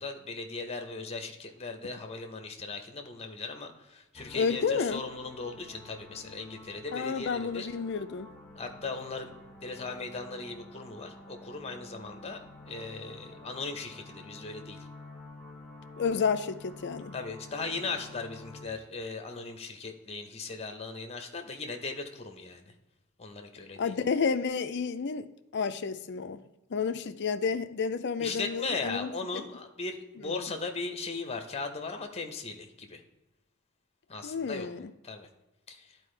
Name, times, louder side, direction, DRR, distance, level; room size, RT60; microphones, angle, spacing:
voice 1, 0.0-7.7 8.5-9.3 9.6-12.4 12.6-14.8 17.1-22.7 23.2-23.9 28.2-33.0 34.1-34.7 35.0-35.3 35.7-36.0, left 3 dB, 30° left, 5 dB, 0.9 m, -38 dB
sound 1, 4.1-18.7, left 2 dB, 5° left, 1.1 m, -50 dB
voice 2, 4.3-5.0 6.9-8.3 16.0-17.1 23.8-26.4 26.7-29.1 30.2-30.4 34.2-34.9, left 5 dB, 50° left, 11 dB, 0.5 m, -31 dB
11.0 x 4.5 x 3.3 m, 0.94 s
head